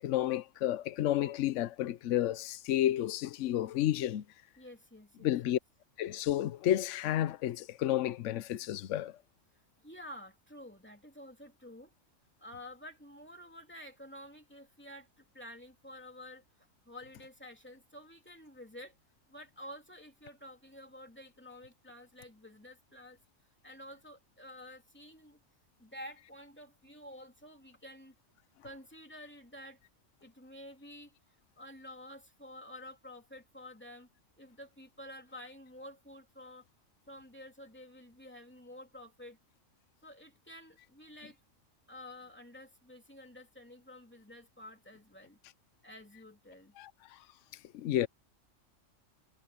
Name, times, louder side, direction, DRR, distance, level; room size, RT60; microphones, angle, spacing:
voice 1, 0.0-4.2 5.2-5.6 6.0-9.2 46.8-47.2 47.7-48.1, left 12 dB, 70° left, 1.0 m, -31 dB
voice 2, 4.6-5.6 9.8-11.9 12.4-18.9 19.3-23.2 23.6-25.4 25.8-28.1 28.6-29.8 30.2-31.1 31.6-34.1 34.4-36.6 37.1-39.4 40.0-41.4 41.9-45.4 45.8-46.7, left 1 dB, 10° left, 2.9 m, -50 dB
omnidirectional pair, 1.4 m